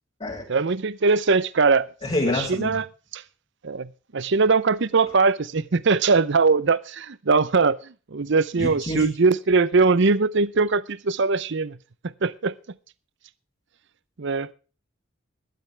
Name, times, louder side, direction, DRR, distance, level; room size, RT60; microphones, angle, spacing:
voice 1, 0.5-1.9 2.3-2.8 3.1-3.2 3.6-11.8 12.2-12.5 14.2-14.5, right 4 dB, 60° right, 0.7 m, -21 dB
voice 2, 2.0-2.8 8.6-9.1, left 1 dB, 30° left, 3.2 m, -27 dB
16.5 x 12.5 x 3.4 m
head